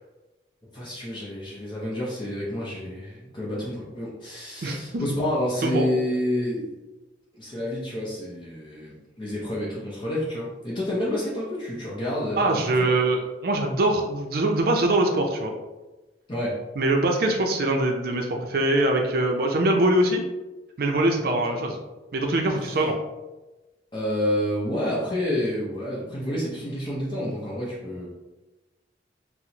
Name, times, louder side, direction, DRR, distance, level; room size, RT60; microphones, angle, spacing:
voice 1, 0.7-6.8 7.3-12.9 16.3-16.6 23.9-28.1, left 1 dB, 25° left, -6 dB, 0.6 m, -29 dB
voice 2, 4.6-5.0 5.6-5.9 12.4-15.5 16.8-20.2 20.8-21.8 22.1-23.0, right 1 dB, 55° right, 3 dB, 0.4 m, -23 dB
4.1 x 2.0 x 2.8 m, 1.1 s
head